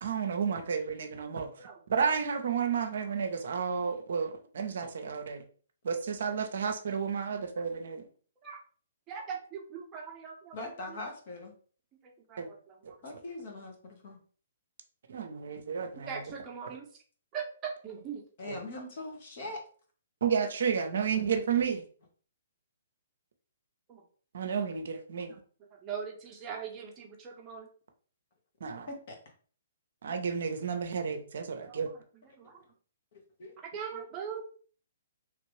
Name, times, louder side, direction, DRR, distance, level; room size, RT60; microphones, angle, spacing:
voice 1, 0.0-5.4 5.8-8.1 12.4-12.5 12.8-12.9 15.1-16.2 18.5-18.6 20.2-21.8 24.3-25.3 28.6-28.9 30.0-31.9, right 6 dB, 65° right, 6 dB, 0.6 m, -32 dB
voice 2, 9.1-10.6 10.9-11.0 12.0-13.0 16.1-17.0 17.3-18.2 23.9-24.0 25.3-25.4 25.7-27.7 31.6-32.0 32.2-32.6 33.6-34.4, right 7 dB, 25° right, 0 dB, 0.8 m, -41 dB
voice 3, 10.5-11.5 13.0-14.2 18.4-19.6 28.9-29.2 32.4-32.5 33.4-33.5, left 2 dB, 50° left, 2 dB, 1.1 m, -41 dB
3.1 x 2.5 x 3.1 m, 0.43 s
hypercardioid pair, 130°, 0 cm